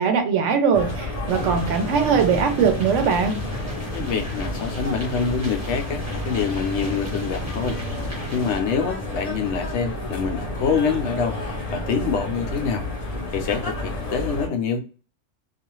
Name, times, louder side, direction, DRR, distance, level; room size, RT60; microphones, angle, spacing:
voice 1, 0.0-3.4, right 6 dB, 75° right, 6 dB, 0.9 m, -21 dB
sound 1, 0.7-14.5, left 1 dB, 40° left, 0.6 m, -31 dB
sound 2, 1.3-8.6, equal, 15° right, 1.0 m, -35 dB
voice 2, 3.9-11.4 11.7-12.9 13.3-14.9, left 6 dB, 70° left, 5 dB, 0.8 m, -26 dB
2.4 x 2.4 x 2.9 m, 0.36 s
omnidirectional pair, 1.3 m